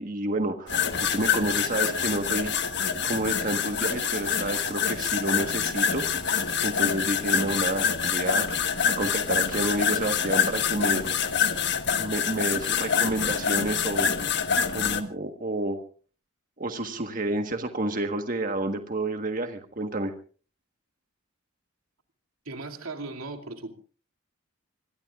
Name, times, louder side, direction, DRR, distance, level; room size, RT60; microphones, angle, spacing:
voice 1, 0.0-2.5 3.0-6.3 6.6-8.5 8.9-11.0 12.0-14.1 14.7-15.8 16.6-20.1, right 2 dB, 40° right, 5 dB, 1.4 m, -30 dB
sound 1, 0.7-15.0, left 7 dB, 55° left, 1.4 m, -26 dB
voice 2, 22.4-23.7, right 3 dB, 85° right, 4 dB, 2.7 m, -37 dB
26.5 x 21.5 x 2.5 m, 0.39 s
head